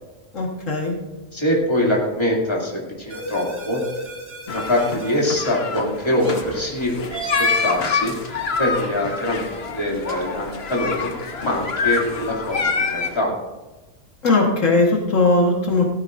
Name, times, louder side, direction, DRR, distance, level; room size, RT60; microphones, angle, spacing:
voice 1, 0.3-0.9 14.2-15.8, left 2 dB, 70° left, -1 dB, 1.9 m, -18 dB
voice 2, 1.3-3.8 4.5-7.2 7.6-8.1 8.6-11.1 11.4-13.3, left 1 dB, 20° left, -3 dB, 2.7 m, -23 dB
sound 1, 3.1-5.4 6.2-6.5 7.1-8.0 8.6-9.1 10.3-10.5 10.9-11.1 11.4-11.6 11.9-12.2 12.5-12.7 13.0-13.2, right 2 dB, 85° right, 4.0 m, -35 dB
sound 2, 4.5-13.2, left 5 dB, 55° left, 1.3 m, -26 dB
16.5 x 14.0 x 2.6 m, 1.2 s
omnidirectional pair, 1.3 m